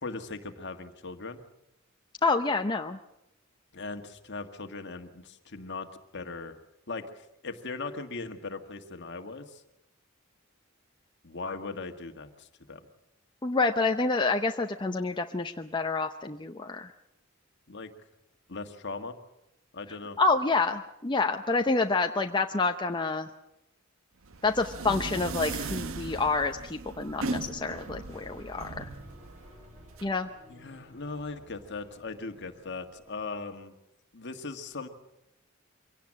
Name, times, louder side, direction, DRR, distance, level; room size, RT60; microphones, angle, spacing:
voice 1, 0.0-1.4 3.7-5.9 6.1-6.6 6.9-9.6 11.2-12.8 17.7-17.9 18.5-19.2 19.7-20.2 30.5-33.7 34.1-34.9, left 3 dB, 55° left, 7 dB, 1.7 m, -39 dB
voice 2, 2.2-3.0 13.4-16.9 20.2-23.3 24.4-28.8 30.0-30.3, left 3 dB, 20° left, 4 dB, 0.7 m, -28 dB
sound 1, 24.2-30.0, right 3 dB, 75° right, 1.0 m, -38 dB
sound 2, 27.7-33.2, equal, 35° right, 6.6 m, -54 dB
24.0 x 17.5 x 7.5 m, 0.86 s
head